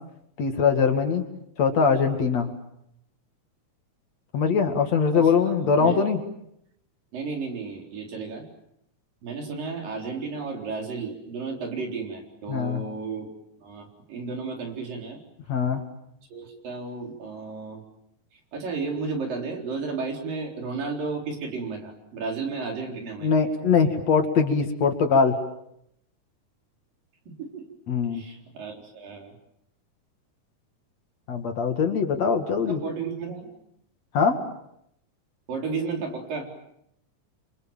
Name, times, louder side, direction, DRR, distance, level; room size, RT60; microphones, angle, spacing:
voice 1, 0.4-1.2 1.6-2.5 4.3-6.2 12.5-12.8 15.5-15.8 23.2-25.4 27.9-28.2 31.3-32.8 34.1-34.4, left 5 dB, 55° left, 5 dB, 3.2 m, -22 dB
voice 2, 7.1-8.4 9.2-13.3 13.6-15.2 16.3-17.8 18.5-23.3 27.3-27.6 28.1-29.3 32.7-33.5 35.5-36.5, right 4 dB, 80° right, 2 dB, 5.9 m, -33 dB
29.5 x 25.5 x 7.4 m, 0.76 s
omnidirectional pair, 3.9 m